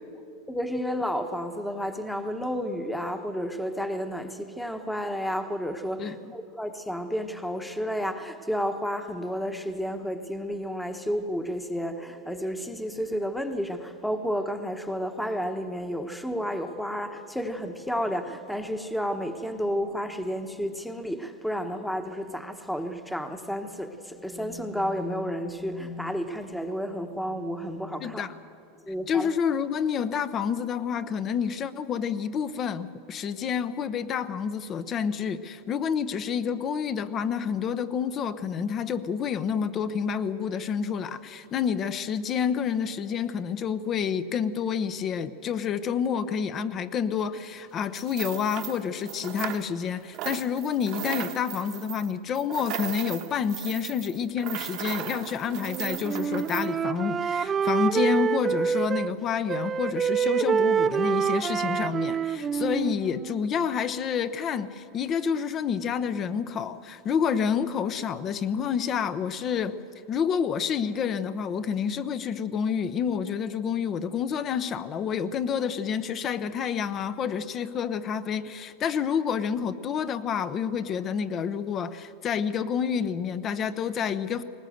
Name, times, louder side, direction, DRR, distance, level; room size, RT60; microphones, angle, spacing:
voice 1, 0.5-28.3 28.9-29.3, equal, 5° left, 7 dB, 1.1 m, -31 dB
voice 2, 6.0-6.3 28.0-28.3 29.1-69.8 70.1-84.4, left 7 dB, 35° left, 13 dB, 0.8 m, -29 dB
sound 1, 47.9-49.9 50.1-56.7, right 13 dB, 50° right, 1.2 m, -37 dB
Wind instrument woodwind instrument, 55.6-59.2 59.5-63.5, right 7 dB, 25° right, 0.5 m, -26 dB
20.0 x 18.5 x 7.9 m, 2.7 s
supercardioid pair, 125°, 0 cm